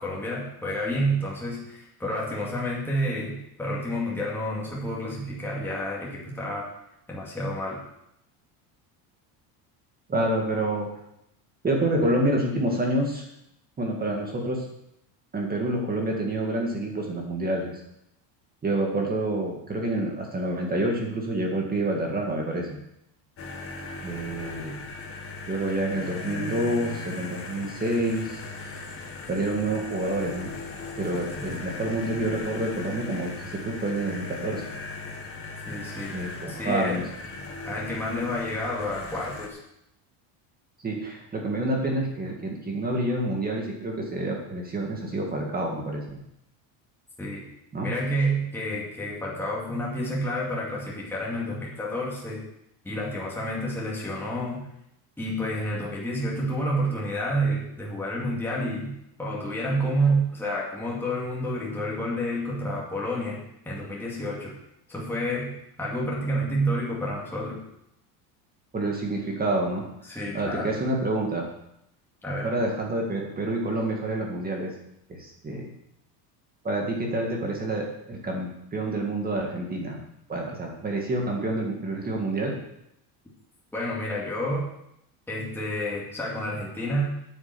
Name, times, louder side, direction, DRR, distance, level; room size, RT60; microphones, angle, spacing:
voice 1, 0.0-6.7 7.1-7.8 35.7-36.2 36.5-37.0 37.7-39.6 47.2-47.5 47.8-52.4 52.8-54.7 55.2-64.6 64.9-67.6 70.1-70.7 72.2-72.6 83.7-84.7 85.3-87.1, equal, 5° left, -5 dB, 2.2 m, -29 dB
voice 2, 10.1-10.9 11.6-13.2 13.8-14.7 15.3-17.8 18.6-22.8 24.0-24.8 25.5-28.8 29.3-30.5 31.0-34.7 36.1-37.0 40.8-46.2 47.7-47.9 68.7-69.8 70.3-71.5 72.4-74.7 75.1-75.7 76.6-80.0 80.3-82.5, right 1 dB, 20° right, 0 dB, 1.8 m, -28 dB
sound 1, 23.4-39.5, left 3 dB, 30° left, 1.6 m, -38 dB
8.9 x 7.3 x 6.8 m, 0.79 s
cardioid pair, 145°, 44 cm